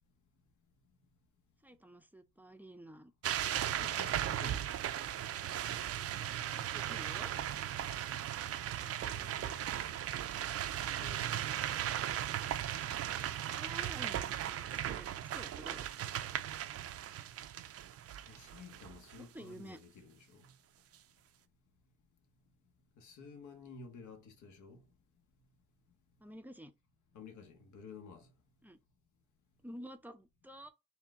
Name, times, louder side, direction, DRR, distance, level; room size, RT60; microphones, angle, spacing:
voice 1, 1.6-3.1 6.5-7.3 8.8-9.3 13.3-15.8 16.2-16.4 19.2-19.8 26.2-26.7 28.6-28.8 29.6-30.7, right 1 dB, 5° right, 0.5 m, -51 dB
sound 1, 3.2-19.2, right 11 dB, 55° right, 0.5 m, -37 dB
voice 2, 3.8-4.7 9.0-9.7 10.9-11.5 18.3-20.5 23.0-24.8 27.1-28.3, left 4 dB, 70° left, 1.0 m, -52 dB
4.4 x 2.2 x 3.6 m
cardioid pair, 90°, 30 cm